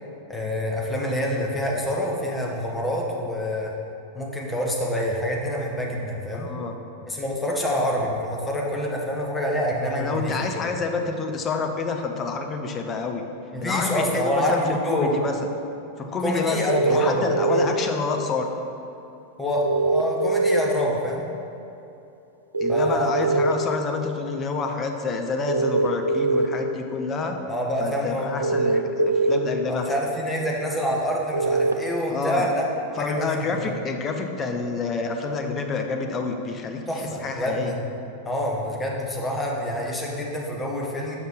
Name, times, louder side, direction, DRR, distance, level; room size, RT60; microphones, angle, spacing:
voice 1, 0.3-3.7 4.1-6.5 7.1-10.7 13.5-15.2 16.2-17.6 19.4-21.3 22.7-23.3 27.5-28.5 29.7-32.7 32.9-33.7 36.9-37.8 38.2-41.2, equal, 10° left, -2 dB, 1.0 m, -26 dB
voice 2, 6.3-6.7 9.9-13.2 13.6-15.3 16.0-16.6 16.9-18.5 22.6-27.4 27.8-29.9 32.1-32.5 33.0-37.7, left 4 dB, 25° left, 4 dB, 0.6 m, -28 dB
sound 1, 16.7-17.7 19.6-20.6 22.5-23.5 25.5-26.5 28.4-29.4 31.3-31.7, right 3 dB, 80° right, 0.4 m, -22 dB
6.3 x 5.4 x 3.8 m, 2.8 s
figure-of-eight pair, 90°, 0 cm